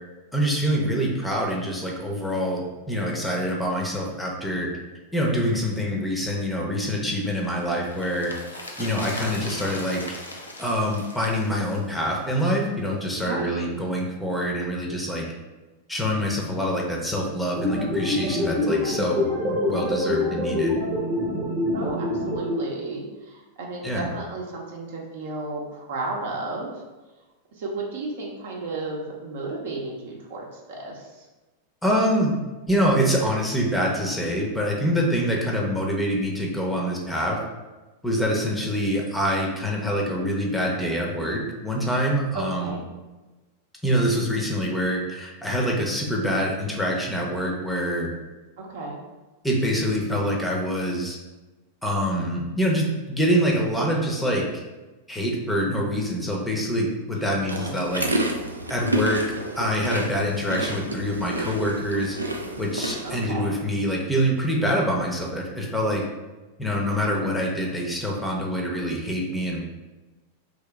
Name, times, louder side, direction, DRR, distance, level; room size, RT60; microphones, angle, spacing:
voice 1, 0.3-4.7 5.1-8.3 8.8-10.0 10.6-15.3 15.9-20.8 23.8-24.1 31.8-32.3 32.7-37.4 38.0-42.7 43.8-48.1 49.4-51.2 51.8-54.4 55.1-58.1 58.7-59.2 59.6-62.2 62.6-66.0 66.6-69.6, equal, 5° left, -1 dB, 0.6 m, -25 dB
sound 1, 7.2-12.6 12.8-12.9, left 2 dB, 80° left, 0.5 m, -39 dB
voice 2, 13.2-13.8 21.7-26.7 27.5-31.3 42.3-42.8 48.6-49.0 57.5-57.8 63.0-63.5, right 3 dB, 55° right, -1 dB, 0.7 m, -33 dB
sound 2, 17.6-22.5, left 2 dB, 30° right, 0.9 m, -25 dB
sound 3, 57.5-63.3, right 1 dB, 80° right, 0.3 m, -29 dB
3.0 x 2.8 x 3.4 m, 1.2 s
figure-of-eight pair, 90°, 0 cm